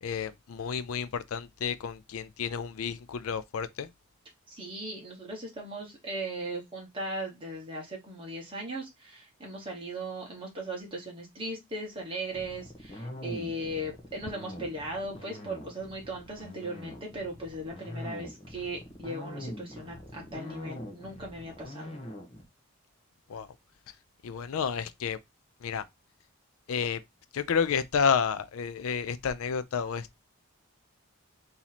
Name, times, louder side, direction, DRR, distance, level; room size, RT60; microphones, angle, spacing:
voice 1, 0.0-3.9 23.3-23.5 24.2-25.2 25.6-25.8 26.7-27.0 27.3-30.2, left 6 dB, 70° left, 0.4 m, -30 dB
voice 2, 4.5-21.9, right 1 dB, 25° right, 1.1 m, -38 dB
sound 1, 12.3-22.4, left 1 dB, 25° left, 0.8 m, -43 dB
3.0 x 2.8 x 3.9 m
head